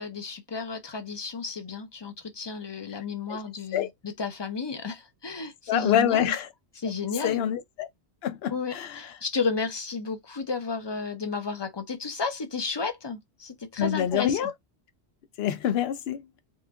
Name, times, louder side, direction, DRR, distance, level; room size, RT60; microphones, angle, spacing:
voice 1, 0.0-6.3 6.8-7.4 8.5-14.4, left 4 dB, 35° left, 0.4 m, -32 dB
voice 2, 5.7-6.5 7.2-7.9 8.2-9.0 13.8-14.5 15.4-16.4, left 10 dB, 70° left, 0.8 m, -26 dB
3.0 x 2.5 x 3.4 m
omnidirectional pair, 1.1 m